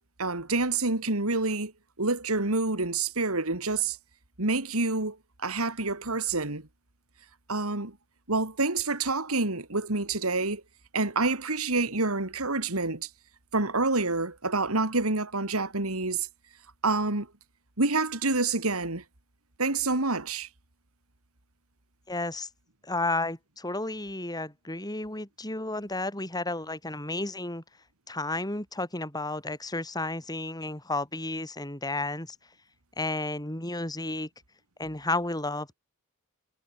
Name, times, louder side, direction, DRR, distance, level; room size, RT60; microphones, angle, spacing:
voice 1, 0.2-1.7 2.0-4.0 4.4-6.7 7.5-8.0 8.3-10.6 10.9-13.1 13.5-16.3 16.8-17.3 17.8-19.0 19.6-20.5, right 3 dB, 80° right, 3.2 m, -27 dB
voice 2, 22.1-22.5 22.8-27.6 28.1-32.4 33.0-34.3 34.8-35.8, left 2 dB, 20° left, 7.1 m, -32 dB
head